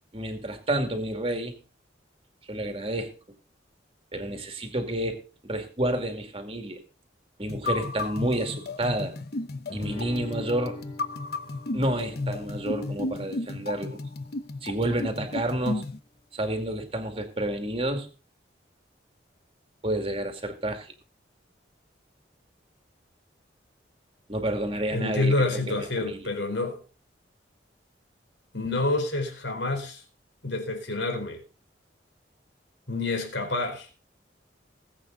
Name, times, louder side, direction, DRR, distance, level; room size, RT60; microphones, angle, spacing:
voice 1, 0.1-1.6 2.5-3.1 4.1-6.8 7.4-9.1 9.7-10.8 11.7-14.0 14.6-15.8 16.3-18.1 19.8-20.9 24.3-26.3, right 1 dB, 30° right, 2.4 m, -30 dB
sound 1, 7.5-16.0, left 2 dB, 55° left, 1.0 m, -33 dB
Guitar, 9.7-14.8, left 1 dB, 30° left, 2.8 m, -44 dB
voice 2, 24.9-26.8 28.5-30.0 30.4-31.4 32.9-33.9, left 2 dB, 75° left, 4.1 m, -28 dB
19.5 x 8.3 x 3.9 m
head